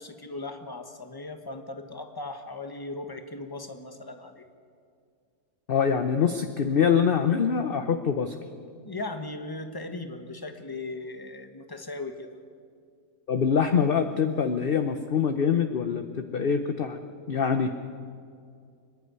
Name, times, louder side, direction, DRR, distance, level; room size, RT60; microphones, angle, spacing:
voice 1, 0.0-4.4 8.8-12.3, left 2 dB, 15° left, 6 dB, 1.2 m, -38 dB
voice 2, 5.7-8.3 13.3-17.0 17.3-17.7, left 7 dB, 45° left, 7 dB, 0.8 m, -24 dB
25.0 x 11.0 x 9.6 m, 2.3 s
omnidirectional pair, 1.6 m